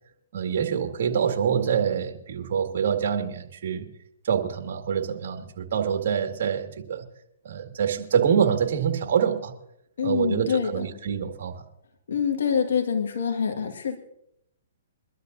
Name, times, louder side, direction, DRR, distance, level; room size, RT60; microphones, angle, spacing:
voice 1, 0.3-3.9 4.2-7.0 7.4-9.5 10.0-11.5, right 7 dB, 60° right, 5 dB, 2.1 m, -25 dB
voice 2, 10.0-10.8 12.1-14.0, left 7 dB, 75° left, 3 dB, 2.0 m, -25 dB
23.5 x 12.0 x 2.8 m, 0.78 s
hypercardioid pair, 140°, 0 cm